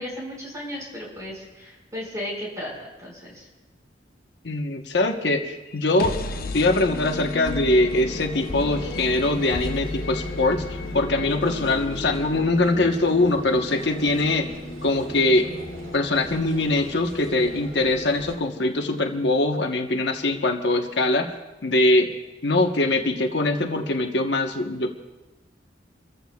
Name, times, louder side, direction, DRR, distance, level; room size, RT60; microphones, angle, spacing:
voice 1, 0.0-3.5, left 1 dB, 20° right, -3 dB, 5.4 m, -35 dB
voice 2, 4.4-6.1 6.5-10.6 10.9-14.4 14.8-15.5 15.9-21.3 21.6-22.1 22.4-24.9, left 2 dB, 75° left, 4 dB, 1.1 m, -22 dB
sound 1, 5.7-19.6, left 2 dB, 55° left, 0.8 m, -35 dB
sound 2, 7.4-18.4, right 1 dB, 55° right, 3.4 m, -39 dB
29.0 x 14.5 x 2.4 m, 1.1 s
head